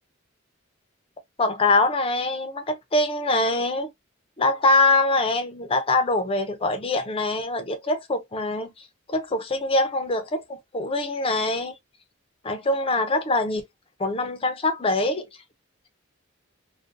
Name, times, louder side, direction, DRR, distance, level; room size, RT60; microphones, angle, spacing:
voice 1, 1.4-3.9 4.4-8.7 9.1-11.7 12.4-13.6 14.0-15.2, left 2 dB, 25° left, 0.5 m, -23 dB
2.5 x 2.1 x 2.5 m
head